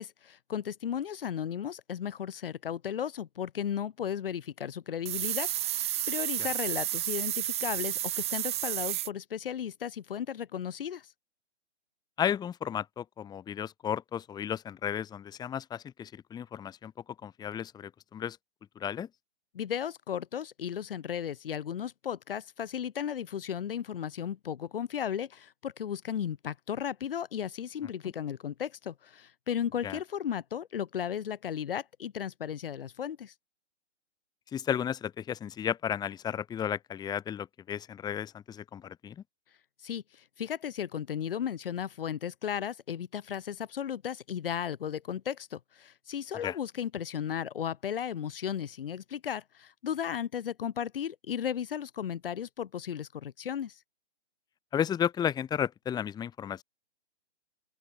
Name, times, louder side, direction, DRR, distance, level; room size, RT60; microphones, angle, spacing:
voice 1, 0.0-11.1 19.5-33.3 39.8-53.8, left 9 dB, 50° left, 3.2 m, -35 dB
sound 1, 5.0-9.1, right 14 dB, 15° right, 4.2 m, -31 dB
voice 2, 12.2-16.9 17.2-18.4 18.8-19.1 29.8-30.0 34.5-39.1 46.4-46.5 54.7-56.6, left 9 dB, 10° left, 2.7 m, -33 dB
open air
figure-of-eight pair, 135°, 35 cm